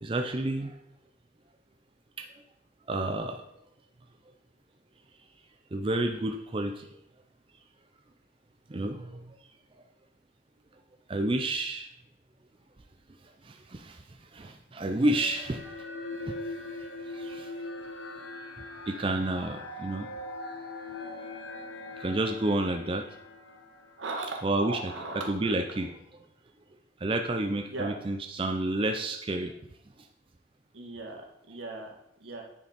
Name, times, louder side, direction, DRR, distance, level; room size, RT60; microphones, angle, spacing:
voice 1, 0.0-0.7 2.2-2.3 2.9-3.4 5.7-6.9 8.7-9.2 11.1-11.9 13.4-14.0 14.3-15.6 16.3-16.4 17.1-17.5 18.9-20.1 22.0-23.1 24.4-24.8 25.3-25.9 27.0-29.5, right 1 dB, 25° right, 5 dB, 0.5 m, -30 dB
sound 1, 15.1-24.6, left 2 dB, 70° left, 1.2 m, -41 dB
voice 2, 24.0-25.6 27.5-28.0 30.7-32.4, right 3 dB, 85° right, 0 dB, 1.9 m, -38 dB
9.7 x 5.1 x 5.1 m, 0.77 s
head